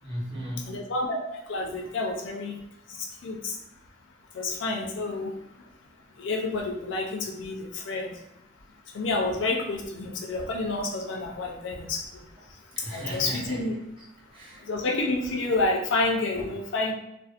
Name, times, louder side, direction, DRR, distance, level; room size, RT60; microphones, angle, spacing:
voice 1, 0.0-0.8 12.8-13.6 14.3-14.7, equal, 25° right, -6 dB, 0.8 m, -36 dB
voice 2, 0.7-2.5 3.2-3.5 4.3-5.3 6.2-8.1 8.9-12.0 12.9-13.7 14.7-16.9, left 2 dB, 80° left, 1 dB, 0.5 m, -29 dB
2.6 x 2.0 x 2.4 m, 0.85 s
head